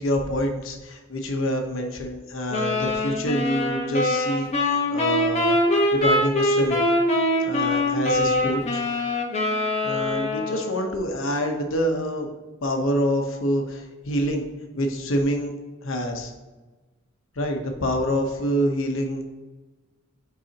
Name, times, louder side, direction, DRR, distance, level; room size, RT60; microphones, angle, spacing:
voice 1, 0.0-5.6 5.9-6.8 7.4-8.8 9.8-12.3 12.6-14.5 14.8-15.5 15.8-16.3 17.4-19.2, equal, 80° left, 3 dB, 1.0 m, -26 dB
sound 1, 2.5-10.9, left 1 dB, 35° left, 1.2 m, -23 dB
8.2 x 4.8 x 2.9 m, 1.2 s
head